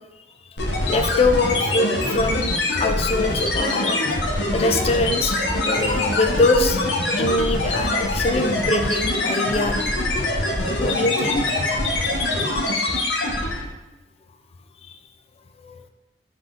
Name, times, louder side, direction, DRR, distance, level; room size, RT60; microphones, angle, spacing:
sound 1, 0.6-13.7, left 2 dB, 75° left, 0.8 m, -23 dB
voice 1, 0.9-6.8 7.2-9.8 10.8-11.6 15.6-15.8, left 2 dB, 35° left, 6 dB, 0.4 m, -23 dB
5.6 x 3.6 x 2.5 m, 1.1 s
head